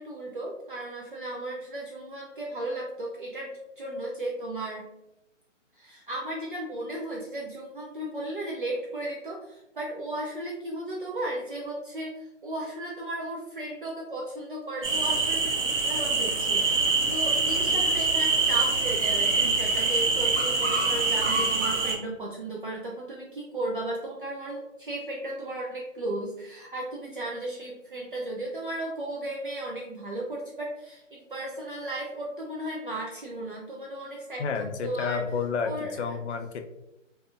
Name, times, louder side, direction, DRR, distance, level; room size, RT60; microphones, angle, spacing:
voice 1, 0.0-3.5 3.8-4.9 5.7-35.2 35.6-36.2, right 1 dB, 45° right, -3 dB, 0.4 m, -35 dB
sound 1, 14.8-22.0, right 3 dB, 80° right, 0.8 m, -25 dB
voice 2, 34.4-36.6, left 5 dB, 65° left, 6 dB, 0.5 m, -30 dB
2.6 x 2.4 x 2.5 m, 0.89 s
hypercardioid pair, 155°, 38 cm